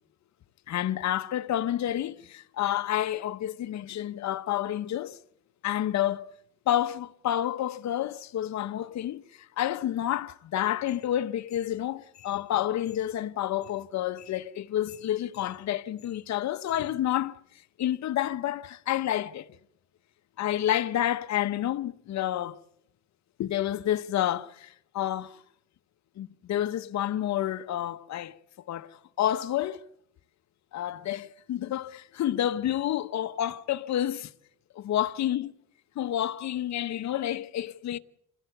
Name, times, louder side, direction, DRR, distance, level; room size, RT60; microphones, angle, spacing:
voice 1, 0.7-5.2 5.6-6.3 6.7-9.2 9.6-17.4 17.8-19.5 20.4-22.6 23.4-25.4 26.2-28.4 28.7-29.8 30.7-34.3 34.7-35.5 36.0-38.0, left 12 dB, 65° left, 1.0 m, -29 dB
26.5 x 16.5 x 7.9 m
cardioid pair, 90°, 30 cm